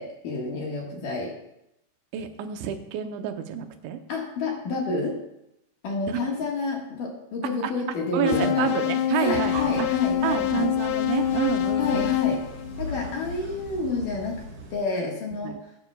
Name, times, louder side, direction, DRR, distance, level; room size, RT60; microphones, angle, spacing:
voice 1, 0.0-1.3 4.1-5.1 5.8-8.7 9.2-10.7 11.8-12.4 12.8-14.4 14.7-15.6, left 3 dB, 55° left, -1 dB, 2.8 m, -29 dB
voice 2, 2.1-4.0 6.1-6.2 7.4-7.7 8.1-9.9 10.2-12.1 15.4-15.6, right 10 dB, 85° right, 6 dB, 3.1 m, -29 dB
sound 1, 8.3-13.4, left 11 dB, 85° left, 2.4 m, -26 dB
Breathing, 9.1-14.9, equal, 50° right, 3.3 m, -39 dB
22.0 x 10.5 x 2.3 m, 0.83 s
omnidirectional pair, 5.2 m